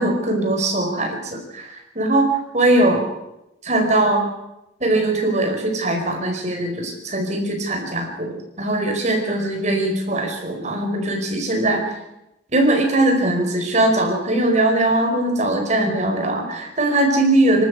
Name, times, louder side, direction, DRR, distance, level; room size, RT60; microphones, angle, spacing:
voice 1, 0.0-3.0 3.6-4.3 4.8-11.8 12.5-17.6, right 1 dB, 40° right, 2 dB, 4.9 m, -20 dB
26.5 x 12.5 x 8.4 m, 0.89 s
head